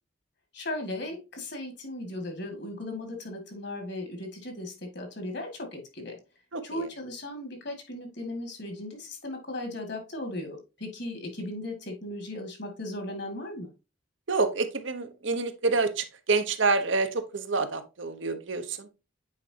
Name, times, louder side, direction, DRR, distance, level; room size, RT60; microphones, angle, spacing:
voice 1, 0.5-6.2 6.6-13.7, left 1 dB, 55° left, 4 dB, 2.3 m, -37 dB
voice 2, 6.5-6.9 14.3-18.9, right 3 dB, 65° right, 9 dB, 1.0 m, -28 dB
8.9 x 4.5 x 2.8 m, 0.28 s
head